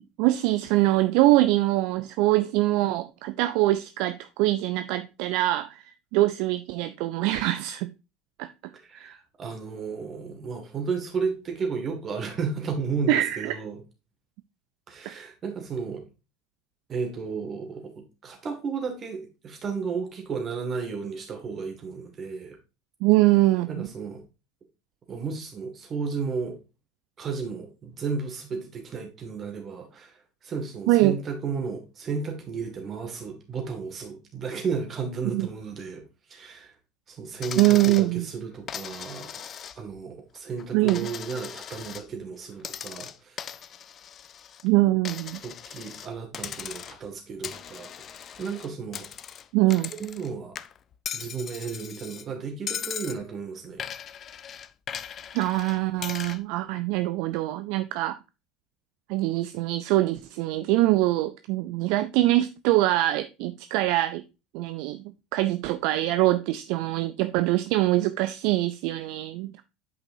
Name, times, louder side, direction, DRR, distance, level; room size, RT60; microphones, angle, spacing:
voice 1, 0.2-5.8 6.1-7.9 8.4-8.5 8.9-9.1 13.1-13.6 23.0-23.9 30.9-31.2 35.3-35.5 37.6-38.3 40.7-41.1 44.6-45.4 49.5-49.9 55.3-58.2 59.1-64.2 64.5-65.0 65.3-69.6, right 17 dB, 55° right, 0.3 m, -23 dB
voice 2, 8.9-13.8 14.9-16.1 16.9-17.9 18.2-22.6 23.7-24.2 25.1-26.6 27.2-30.1 30.4-36.0 36.3-36.7 37.1-39.5 39.8-43.4 45.4-47.9 48.4-49.1 49.9-50.6 51.1-53.8, right 5 dB, 35° right, 2.1 m, -33 dB
Coin (dropping), 37.4-38.1 38.7-40.0 40.4-42.1 42.6-44.6 45.1-46.1 46.3-47.1 47.4-50.3 50.6-52.3 52.7-53.2 53.8-56.4, left 9 dB, 40° left, 0.4 m, -38 dB
8.4 x 5.3 x 2.7 m
figure-of-eight pair, 70°, 0 cm